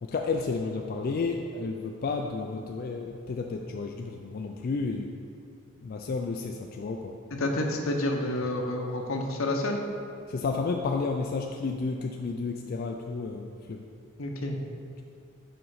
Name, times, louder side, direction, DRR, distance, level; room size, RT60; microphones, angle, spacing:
voice 1, 0.0-5.1 5.8-7.2 10.3-13.9, left 4 dB, 45° left, 2 dB, 0.3 m, -31 dB
voice 2, 7.3-9.8 14.2-14.6, left 1 dB, 75° left, 2 dB, 0.8 m, -29 dB
5.5 x 5.2 x 5.5 m, 2.5 s
head